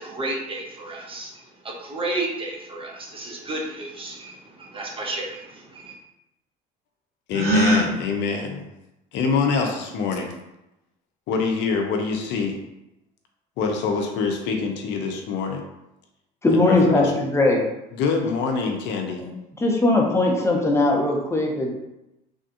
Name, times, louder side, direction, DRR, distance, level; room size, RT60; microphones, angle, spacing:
voice 1, 0.0-5.9, right 2 dB, 30° right, 0 dB, 0.7 m, -32 dB
voice 2, 7.3-8.7 9.1-10.3 11.3-12.6 13.6-15.6 16.5-17.1 17.9-19.2, left 5 dB, 70° left, 3 dB, 0.6 m, -25 dB
Gasp, 7.3-7.9, equal, 60° right, 1.4 m, -19 dB
voice 3, 16.4-17.7 19.2-19.3 19.6-21.8, left 2 dB, 15° left, -1 dB, 0.8 m, -20 dB
3.4 x 2.5 x 2.4 m, 0.90 s
supercardioid pair, 80°, 19 cm